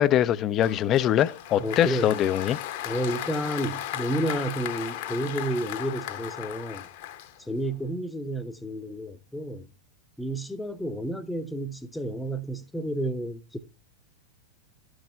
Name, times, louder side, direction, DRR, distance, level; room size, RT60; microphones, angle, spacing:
voice 1, 0.0-2.6, left 11 dB, 30° left, 0.4 m, -23 dB
Applause, 0.6-7.7, left 12 dB, 50° left, 0.9 m, -36 dB
voice 2, 1.6-2.2 2.8-6.9 7.5-9.7 10.2-13.6, right 1 dB, 5° left, 0.8 m, -31 dB
12.0 x 6.3 x 3.3 m
figure-of-eight pair, 90°, 0 cm